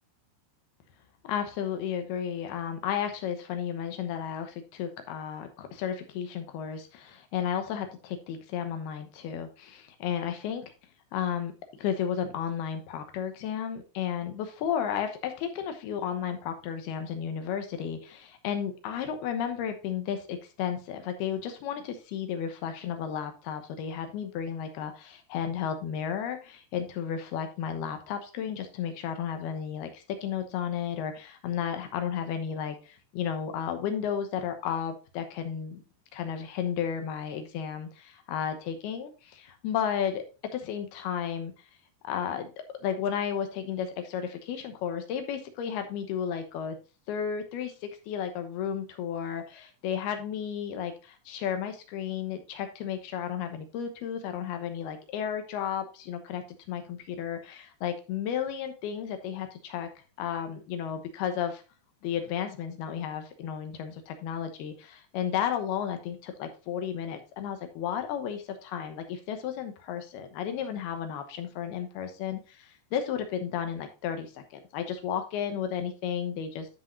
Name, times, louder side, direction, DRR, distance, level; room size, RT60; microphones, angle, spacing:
voice 1, 1.2-10.7 11.1-35.8 36.1-40.2 40.5-41.5 42.0-42.5 42.8-46.8 47.1-59.9 60.2-61.6 62.0-76.7, left 8 dB, 75° left, 7 dB, 2.8 m, -33 dB
13.0 x 5.5 x 2.6 m, 0.33 s
omnidirectional pair, 4.9 m